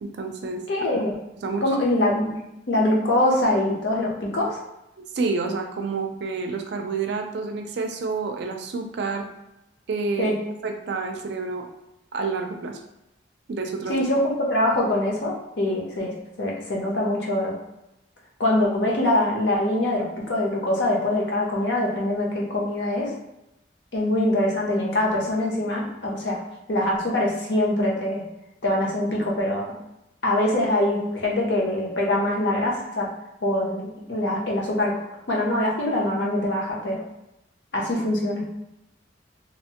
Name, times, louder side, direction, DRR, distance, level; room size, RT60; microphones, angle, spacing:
voice 1, 0.0-0.6 1.4-1.6 5.1-9.3 9.9-10.3 10.6-11.7 12.1-12.8 13.5-14.0, right 4 dB, 65° right, 4 dB, 0.4 m, -28 dB
voice 2, 0.7-1.1 1.6-2.4 2.7-4.6 10.2-10.4 13.9-17.6 18.4-23.1 23.9-26.4 26.7-28.2 28.6-29.7 30.2-33.1 33.4-35.0 35.3-37.0 37.7-38.5, left 1 dB, 70° left, -2 dB, 0.7 m, -23 dB
2.8 x 2.1 x 2.8 m, 0.89 s
head